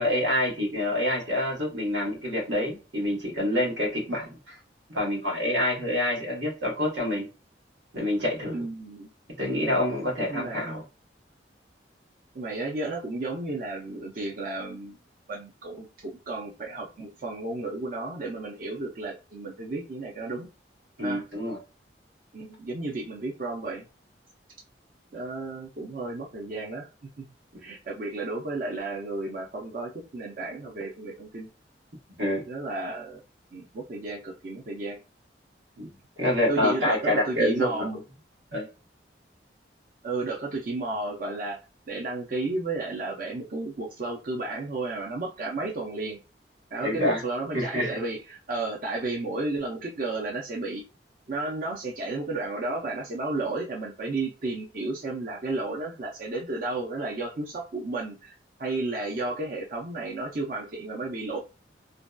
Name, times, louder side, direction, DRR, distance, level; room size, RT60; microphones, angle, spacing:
voice 1, 0.0-4.6 4.9-7.3 7.9-8.6 9.4-10.8 21.0-21.6 32.2-32.4 35.8-35.9 36.2-37.9 38.5-38.7 46.8-47.2 47.5-47.9, left 1 dB, 90° right, 1.1 m, -27 dB
voice 2, 8.5-9.1 10.3-10.7 12.3-15.0 15.3-20.5 21.0-21.3 22.3-23.9 25.1-26.9 27.2-27.3 27.6-31.5 32.4-33.2 33.5-35.0 36.5-38.0 40.0-41.6 41.9-46.2 46.7-50.8 51.3-58.3 58.6-61.4, right 2 dB, 45° right, 0.5 m, -33 dB
2.7 x 2.1 x 2.2 m
head